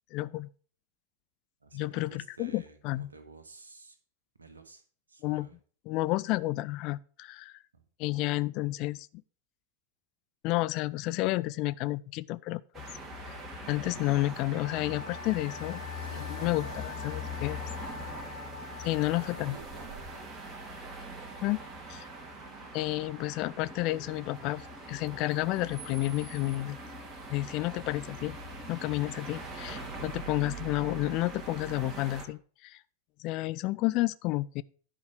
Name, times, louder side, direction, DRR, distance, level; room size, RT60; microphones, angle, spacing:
voice 1, 0.1-0.5 1.7-3.1 5.2-5.5 5.9-7.6 8.0-9.1 10.4-12.6 13.2-13.3 13.7-15.8 16.3-17.6 18.8-19.6 21.4-21.6 21.9-22.1 22.7-26.8 27.3-28.4 28.7-32.8 33.2-34.6, left 18 dB, 40° left, 0.3 m, -31 dB
voice 2, 1.6-4.0 4.4-4.8 5.1-5.6 7.7-7.8 16.1-17.3 18.8-20.3 28.9-29.1, right 4 dB, 75° right, 1.5 m, -52 dB
sound 1, 12.7-32.3, equal, 25° right, 2.3 m, -42 dB
Wind instrument woodwind instrument, 14.6-19.5, left 6 dB, 75° left, 1.0 m, -45 dB
10.5 x 5.0 x 6.4 m
figure-of-eight pair, 90°, 0 cm